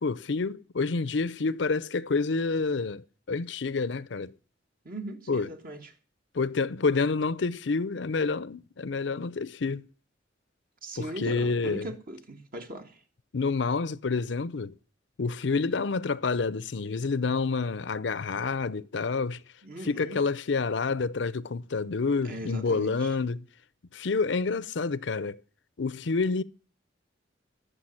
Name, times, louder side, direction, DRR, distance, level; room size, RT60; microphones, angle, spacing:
voice 1, 0.0-4.3 5.3-5.5 6.3-9.9 11.0-11.9 13.3-14.7 15.2-19.4 19.8-23.5 23.9-25.4 25.8-26.4, left 4 dB, 70° left, 0.6 m, -28 dB
voice 2, 4.9-5.9 10.8-13.0 19.6-20.2 22.2-23.2, right 1 dB, 50° right, 1.6 m, -39 dB
13.0 x 6.9 x 9.7 m
head